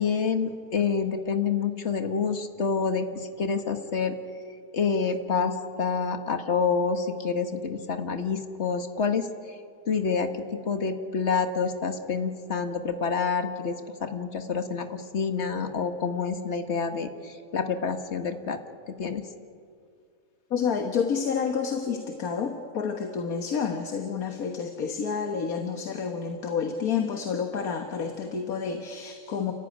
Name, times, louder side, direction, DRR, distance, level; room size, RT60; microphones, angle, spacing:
voice 1, 0.0-4.2 4.7-9.3 9.9-10.3 10.6-18.6 19.0-19.2, left 5 dB, 45° left, 7 dB, 1.8 m, -28 dB
voice 2, 20.5-29.5, left 6 dB, 65° left, 5 dB, 1.8 m, -29 dB
30.0 x 14.5 x 10.0 m, 2.3 s
omnidirectional pair, 1.6 m